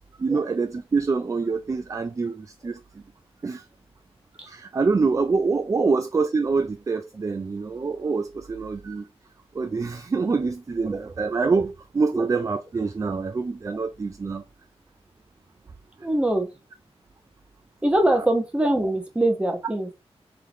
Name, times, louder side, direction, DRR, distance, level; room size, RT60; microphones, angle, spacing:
voice 1, 0.2-2.8 3.4-3.6 4.4-9.1 9.5-14.4 18.1-18.2, right 4 dB, 30° right, 0.4 m, -25 dB
voice 2, 16.0-16.5 17.8-19.9, right 1 dB, 10° right, 1.1 m, -23 dB
3.8 x 3.3 x 4.0 m
wide cardioid pair, 120°, 11 cm